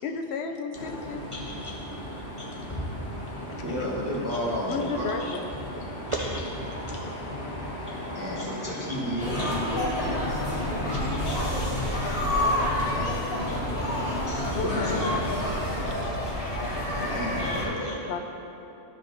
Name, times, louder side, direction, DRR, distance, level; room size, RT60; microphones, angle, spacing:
voice 1, 0.0-1.2 4.7-5.5 9.7-10.6 14.5-15.1 15.9-16.2 16.5-16.7 18.1-18.2, left 4 dB, 70° left, 4 dB, 0.8 m, -34 dB
sound 1, 0.7-15.9, left 1 dB, 85° left, 1.6 m, -36 dB
voice 2, 1.3-2.0 2.4-2.5 5.2-5.3 6.1-6.4 9.4-9.5 11.3-11.4 16.9-17.0 17.4-17.9, right 1 dB, 45° right, -2 dB, 0.4 m, -36 dB
voice 3, 3.6-5.2 8.1-9.4 14.3-15.1 17.0-18.0, equal, 15° right, -8 dB, 1.0 m, -32 dB
sound 2, 9.2-17.7, left 1 dB, 50° left, 1.5 m, -28 dB
12.5 x 5.0 x 2.6 m, 2.9 s
omnidirectional pair, 1.2 m